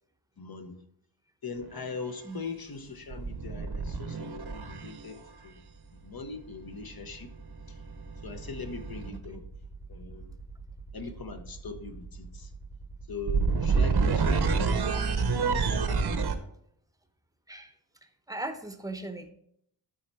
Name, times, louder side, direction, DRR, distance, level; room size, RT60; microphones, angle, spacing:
voice 1, 0.4-0.8 1.4-5.6 6.0-7.3 7.7-7.8 8.2-9.4 9.9-10.3 10.9-12.5 13.1-14.7 15.1-15.9, left 4 dB, 50° left, 7 dB, 1.0 m, -41 dB
sound 1, 1.6-1.9 3.1-5.2 7.0-16.4, right 5 dB, 55° right, 0.9 m, -29 dB
voice 2, 9.1-9.4 17.5-17.7 18.3-19.3, right 2 dB, 5° right, 8 dB, 0.9 m, -38 dB
12.5 x 4.3 x 4.6 m, 0.72 s
wide cardioid pair, 90°, 48 cm